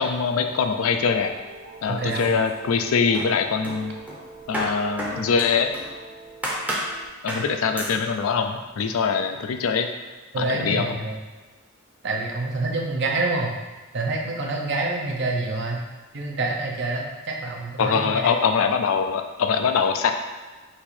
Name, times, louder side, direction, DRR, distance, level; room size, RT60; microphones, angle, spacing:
voice 1, 0.0-1.3 1.8-3.9 4.5-5.7 7.2-9.9 10.4-10.9 17.8-20.1, left 5 dB, 85° left, 7 dB, 0.4 m, -23 dB
sound 1, 0.9-7.1, right 4 dB, 85° right, 1.0 m, -45 dB
voice 2, 1.9-2.3 10.3-11.2 12.0-13.6 13.9-15.8 16.1-18.3, right 3 dB, 60° right, 0 dB, 0.7 m, -27 dB
sound 2, 2.0-2.8 3.1-5.9 6.4-6.9 7.3-7.5 7.8-8.0, equal, 5° right, 0.6 m, -31 dB
4.1 x 2.6 x 4.2 m, 1.3 s
head